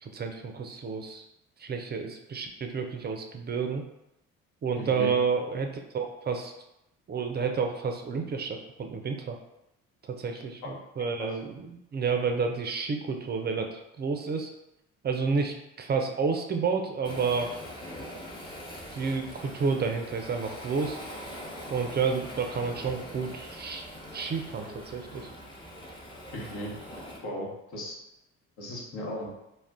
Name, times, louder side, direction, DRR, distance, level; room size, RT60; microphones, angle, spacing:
voice 1, 0.0-1.2 1.6-3.8 4.6-6.5 7.1-9.4 10.0-14.5 15.0-17.5 18.9-21.0 21.7-23.8 24.1-25.3, right 5 dB, 30° right, 4 dB, 0.4 m, -30 dB
voice 2, 4.7-5.1 10.6-10.7 11.2-11.3 26.3-26.7 27.2-28.0 28.6-29.3, equal, 60° left, -3 dB, 1.1 m, -36 dB
Waves surf, 17.0-27.2, equal, 15° left, 0.9 m, -43 dB
2.4 x 2.2 x 3.5 m, 0.88 s
hypercardioid pair, 55°, 35 cm